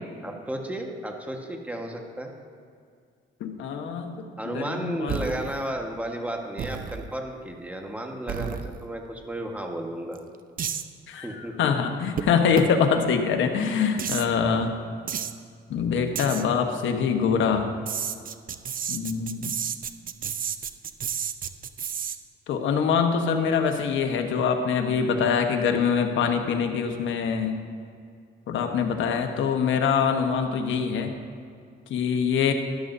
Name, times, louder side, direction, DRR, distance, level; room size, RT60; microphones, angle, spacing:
voice 1, 0.1-2.3 4.4-10.2 11.2-11.7, right 1 dB, 5° right, 2 dB, 1.4 m, -33 dB
voice 2, 3.4-4.2 4.5-5.2 11.1-11.3 11.6-14.7 15.7-17.6 18.9-19.5 22.5-27.6 28.5-31.1 31.9-32.5, left 6 dB, 75° left, 4 dB, 1.1 m, -24 dB
sound 1, 5.1-5.7 6.6-7.1 8.3-8.9 10.1-10.2 10.6-10.8 12.2-12.3 12.6-12.7 14.0-14.3 15.1-15.3 16.2-16.4 17.9-22.2, right 8 dB, 45° right, 0.6 m, -31 dB
13.5 x 11.0 x 2.7 m, 2.3 s
cardioid pair, 90°, 20 cm